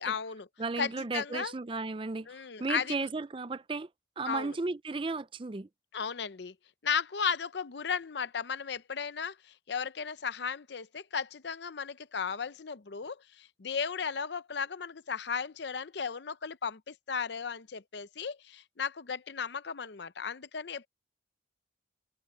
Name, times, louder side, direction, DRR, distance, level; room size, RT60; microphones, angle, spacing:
voice 1, 0.0-0.5 0.8-1.5 2.3-3.0 4.3-4.6 5.9-6.5 6.8-20.9, left 6 dB, 65° left, 0.6 m, -35 dB
voice 2, 0.6-3.9 4.2-5.7, right 3 dB, 25° right, 0.4 m, -34 dB
head